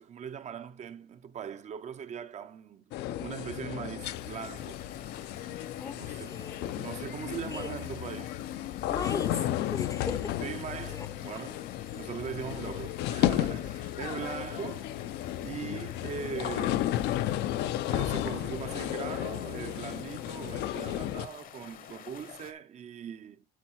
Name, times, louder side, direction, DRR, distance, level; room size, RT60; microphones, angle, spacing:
voice 1, 0.0-2.9 3.2-4.8 5.9-6.3 6.8-8.4 10.4-11.6 11.9-14.9 15.4-17.3 17.9-23.5, right 8 dB, 45° right, 0.5 m, -40 dB
sound 1, 2.9-21.3, left 13 dB, 80° left, 0.6 m, -33 dB
sound 2, 4.0-22.5, left 8 dB, 55° left, 0.9 m, -49 dB
voice 2, 5.8-6.7 7.5-7.7 8.9-10.4 10.8-11.1 14.2-14.4, left 4 dB, 20° left, 0.6 m, -39 dB
9.2 x 4.2 x 4.6 m
cardioid pair, 110°, 17 cm